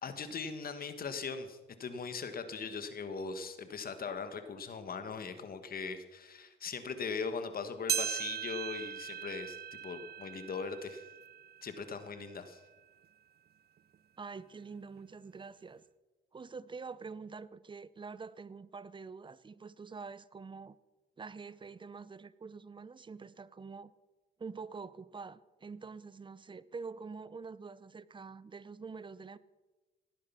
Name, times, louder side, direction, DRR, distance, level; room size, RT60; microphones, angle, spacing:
voice 1, 0.0-9.6 9.8-11.1 11.6-12.6, left 5 dB, 50° left, 1.7 m, -40 dB
sound 1, 7.9-12.5 13.0-13.1 13.9-14.0 15.0-15.1, right 9 dB, 55° right, 0.8 m, -39 dB
voice 2, 14.2-15.8 16.3-20.8 21.2-23.9 24.4-29.4, right 4 dB, 25° right, 0.7 m, -46 dB
18.0 x 9.9 x 5.9 m
cardioid pair, 90°, 20 cm